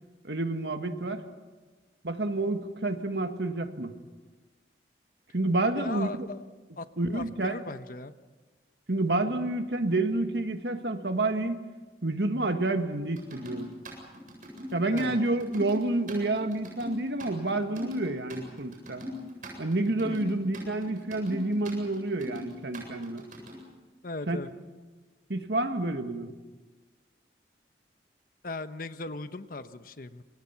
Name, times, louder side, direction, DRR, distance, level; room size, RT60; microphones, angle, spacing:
voice 1, 0.2-1.2 2.0-3.9 5.3-6.3 7.0-7.6 8.9-11.6 12.0-13.7 14.7-19.0 19.6-23.2 24.3-24.4 25.3-26.3, right 2 dB, 65° right, 7 dB, 1.8 m, -29 dB
voice 2, 5.7-6.4 6.8-6.9 7.1-8.1 14.9-15.2 20.1-20.4 24.0-24.5 28.4-30.2, left 2 dB, 50° left, 11 dB, 1.0 m, -38 dB
sound 1, 13.2-23.6, left 1 dB, 45° right, 7.8 m, -40 dB
27.5 x 24.5 x 5.9 m, 1.3 s
head